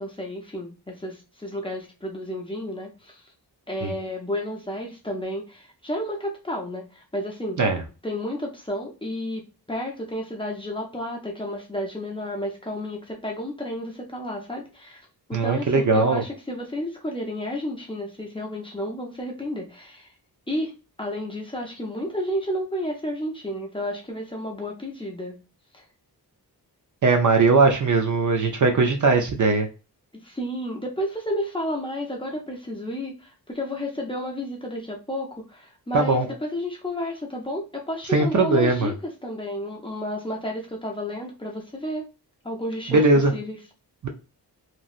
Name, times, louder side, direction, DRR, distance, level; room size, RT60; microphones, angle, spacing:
voice 1, 0.0-3.2 3.7-7.6 8.0-15.0 15.3-20.1 20.5-20.7 21.0-25.4 25.7-25.8 30.1-42.1 42.4-43.6, equal, 15° left, -1 dB, 0.6 m, -31 dB
voice 2, 15.3-16.2 27.0-29.7 35.9-36.3 38.1-38.9 42.9-43.3 44.0-44.1, right 3 dB, 45° right, 4 dB, 0.5 m, -19 dB
3.0 x 2.6 x 2.4 m, 0.33 s
wide cardioid pair, 150°, 42 cm